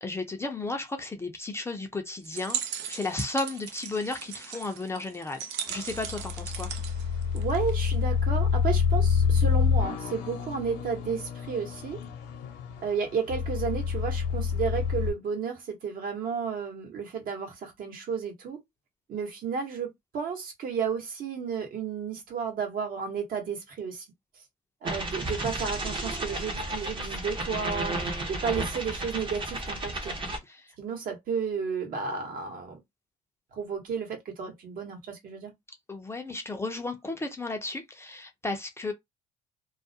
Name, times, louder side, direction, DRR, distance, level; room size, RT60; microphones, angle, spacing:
voice 1, 0.0-2.6 2.9-5.4 5.7-6.7 30.5-30.7 35.9-38.9, left 2 dB, 15° left, 0.5 m, -34 dB
sound 1, 2.2-7.9, right 9 dB, 80° right, 0.5 m, -38 dB
sound 2, 5.7-15.1, left 7 dB, 90° left, 0.7 m, -27 dB
voice 2, 7.3-12.0 12.8-18.6 19.1-24.1 24.8-27.9 28.3-30.1 30.8-32.8 33.5-35.5, right 6 dB, 55° right, 1.0 m, -32 dB
sound 3, 24.8-30.4, right 1 dB, 30° right, 0.7 m, -33 dB
2.3 x 2.1 x 2.6 m
cardioid pair, 110°, 17 cm